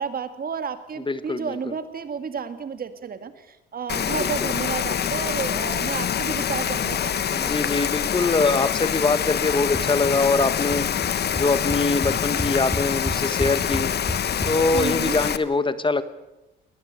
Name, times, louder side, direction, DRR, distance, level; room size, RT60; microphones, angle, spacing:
voice 1, 0.0-7.5 14.7-15.2, right 6 dB, 50° right, 10 dB, 2.1 m, -31 dB
voice 2, 1.1-1.7 4.2-4.5 7.3-11.0 11.3-13.9 14.4-16.0, left 3 dB, 25° left, 13 dB, 1.2 m, -23 dB
Rain, 3.9-15.4, left 9 dB, 55° left, 1.2 m, -25 dB
sound 1, 9.7-10.1 10.4-10.8 11.0-11.1 11.4-14.9, equal, 10° left, 3.5 m, -30 dB
20.5 x 19.0 x 8.2 m, 0.96 s
cardioid pair, 90°, 20 cm